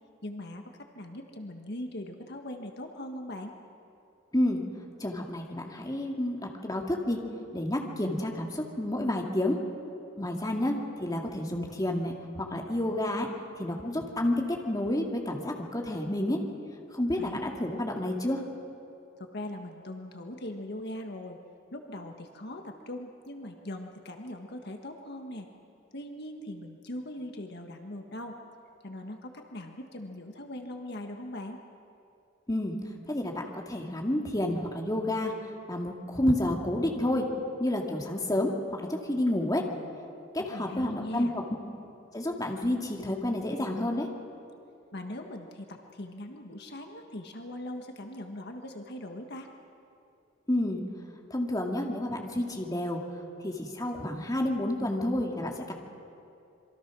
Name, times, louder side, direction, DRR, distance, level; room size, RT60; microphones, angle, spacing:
voice 1, 0.2-3.5 17.2-17.4 19.2-21.4 21.7-25.5 25.9-28.4 28.8-31.6 40.5-41.3 44.9-49.5, left 1 dB, 55° left, 4 dB, 1.6 m, -40 dB
voice 2, 5.0-6.4 6.6-7.2 7.5-9.6 10.2-10.8 11.0-13.3 13.6-16.4 16.9-18.4 32.5-32.8 33.1-35.3 35.7-37.3 37.6-38.5 38.8-39.6 40.3-41.3 42.1-44.1 50.5-50.8 51.3-53.0 53.4-55.7, left 1 dB, 20° left, 1 dB, 2.3 m, -29 dB
26.5 x 23.5 x 6.2 m, 2.7 s
head